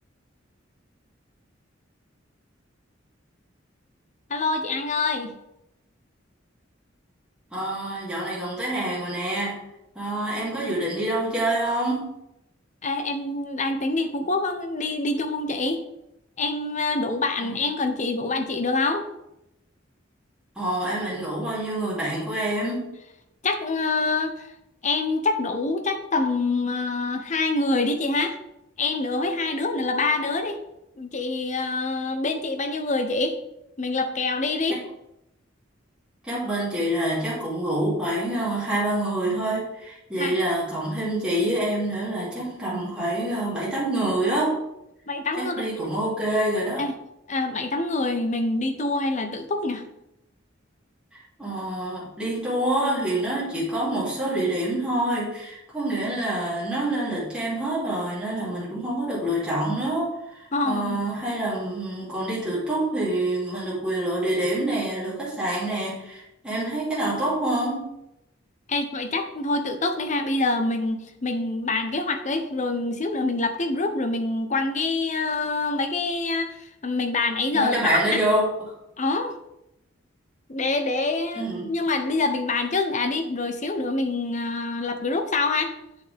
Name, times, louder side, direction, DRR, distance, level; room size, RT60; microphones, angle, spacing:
voice 1, 4.3-5.3 12.8-15.8 16.4-19.0 23.4-24.5 24.8-28.4 28.8-30.6 31.0-33.4 33.8-34.8 40.2-40.4 45.1-45.9 46.8-46.9 47.3-49.8 60.5-61.0 68.7-76.5 76.8-78.2 79.0-79.3 80.5-85.7, left 3 dB, 40° left, 7 dB, 0.8 m, -26 dB
voice 2, 7.5-9.6 9.9-12.1 17.4-17.5 20.6-22.9 36.2-44.6 45.4-46.9 51.1-67.9 77.5-78.7 81.3-81.7, right 1 dB, 5° right, -8 dB, 2.9 m, -26 dB
8.3 x 6.5 x 3.5 m, 0.85 s
head